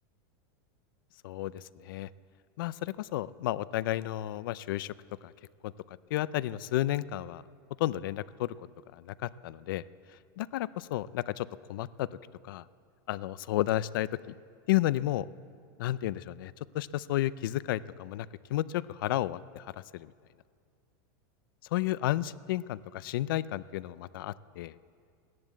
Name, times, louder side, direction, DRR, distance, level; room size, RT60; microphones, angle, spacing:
voice 1, 1.2-2.1 2.6-4.9 5.2-5.3 5.6-7.4 7.8-8.5 8.9-9.8 10.4-12.1 12.4-12.6 13.1-14.1 14.7-15.3 15.8-20.1 21.7-24.7, left 14 dB, 70° left, 18 dB, 0.5 m, -32 dB
15.0 x 11.0 x 8.3 m, 2.2 s
supercardioid pair, 165°, 12 cm